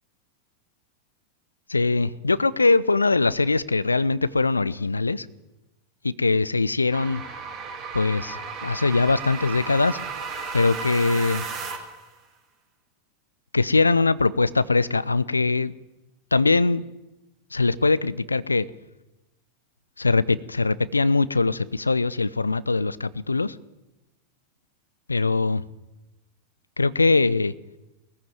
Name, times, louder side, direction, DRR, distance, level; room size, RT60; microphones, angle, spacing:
voice 1, 1.7-5.3 6.0-7.2 7.9-10.0 10.5-11.5 13.5-15.7 16.3-16.8 17.5-18.7 20.0-23.5 25.1-25.6 26.8-27.5, left 3 dB, 80° left, 19 dB, 0.6 m, -22 dB
sound 1, 6.9-12.1, right 5 dB, 40° right, 4.3 m, -34 dB
20.5 x 14.5 x 9.2 m, 0.97 s
figure-of-eight pair, 90°, 0 cm